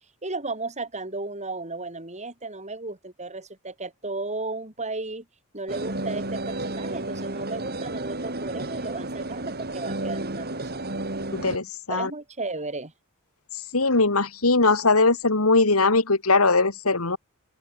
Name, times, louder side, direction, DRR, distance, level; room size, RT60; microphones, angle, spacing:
voice 1, 0.2-5.3 5.5-10.8 11.9-12.9, right 3 dB, 30° right, 8.0 m, -34 dB
sound 1, 5.7-11.6, right 2 dB, 45° right, 7.5 m, -32 dB
voice 2, 11.3-12.1 13.7-17.2, left 3 dB, 80° left, 2.6 m, -20 dB
open air
head